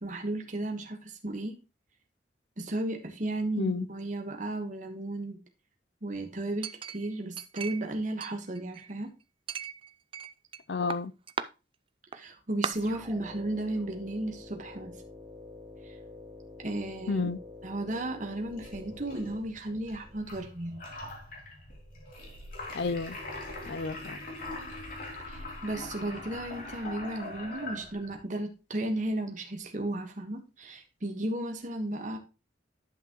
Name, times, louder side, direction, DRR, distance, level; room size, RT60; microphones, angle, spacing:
voice 1, 0.0-1.5 2.6-5.4 6.0-9.1 12.1-14.9 15.8-16.0 16.6-17.3 17.6-20.8 25.3-32.2, right 1 dB, 45° right, 1.3 m, -34 dB
Chink clink, 6.6-7.9 8.2-9.0 9.5-10.6 10.9-11.5 12.1-12.2 12.6-12.7, right 6 dB, 30° right, 0.4 m, -37 dB
voice 2, 10.7-11.1 17.1-17.4 22.7-23.2 23.7-24.2, left 4 dB, 65° left, 0.5 m, -31 dB
sound 1, 12.7-20.2, left 2 dB, 10° right, 2.9 m, -48 dB
sound 2, 18.5-28.2, left 2 dB, 50° left, 2.6 m, -42 dB
10.5 x 6.0 x 3.0 m
head